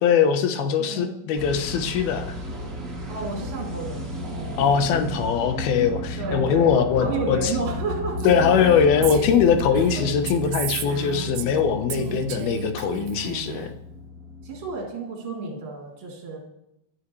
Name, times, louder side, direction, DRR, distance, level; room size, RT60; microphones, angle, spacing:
voice 1, 0.0-2.4 4.6-7.5 8.2-13.7, left 7 dB, 70° left, 7 dB, 2.8 m, -21 dB
voice 2, 0.8-1.1 3.1-4.6 6.2-8.2 8.5-9.1 9.8-10.0 11.9-12.3 14.4-16.4, right 3 dB, 55° right, -1 dB, 4.9 m, -32 dB
sound 1, 1.3-14.7, left 2 dB, 30° right, 2.8 m, -33 dB
Female speech woman speaking, 8.2-11.6 11.9-13.7, right 12 dB, 90° right, 3.1 m, -34 dB
25.5 x 11.0 x 3.2 m, 0.80 s
omnidirectional pair, 4.9 m